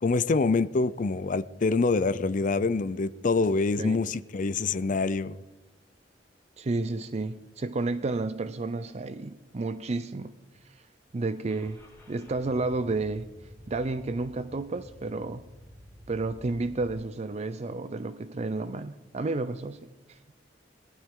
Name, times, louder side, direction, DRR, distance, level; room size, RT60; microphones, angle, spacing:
voice 1, 0.0-5.4, left 3 dB, 45° left, 0.5 m, -26 dB
voice 2, 3.8-4.1 6.6-10.3 10.7-10.8 11.1-11.8 12.1-13.3 13.7-15.4 16.1-19.8 20.1-20.2, right 3 dB, 40° right, 0.5 m, -31 dB
Car / Engine starting, 11.5-16.9, equal, 15° left, 3.4 m, -51 dB
18.5 x 12.0 x 3.7 m
head